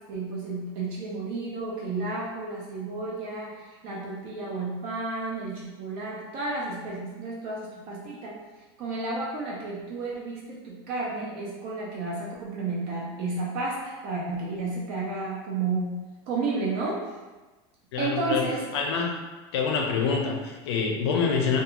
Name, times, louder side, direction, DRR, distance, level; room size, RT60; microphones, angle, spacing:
voice 1, 0.1-8.4 8.8-17.2 18.0-18.7, right 3 dB, 40° right, -4 dB, 0.5 m, -32 dB
voice 2, 17.9-18.5 18.7-19.2 19.5-21.6, left 5 dB, 80° left, 2 dB, 0.5 m, -26 dB
2.4 x 2.3 x 2.8 m, 1.2 s
supercardioid pair, 170°, 14 cm